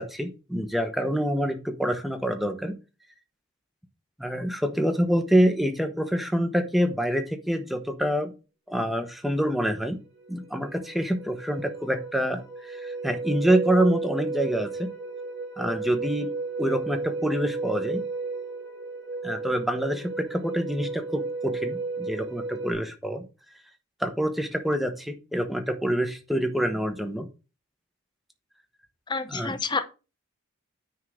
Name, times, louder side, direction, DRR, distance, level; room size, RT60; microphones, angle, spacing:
voice 1, 0.0-2.7 4.2-8.3 8.7-10.0 10.3-14.9 15.6-16.3 16.6-18.0 19.2-23.2 24.0-27.3 29.3-29.6, equal, ahead, 0.9 m, -26 dB
sound 1, 10.2-22.7, right 3 dB, 50° right, 4.3 m, -34 dB
voice 2, 29.1-29.8, left 4 dB, 20° left, 0.6 m, -28 dB
9.5 x 3.7 x 6.4 m
head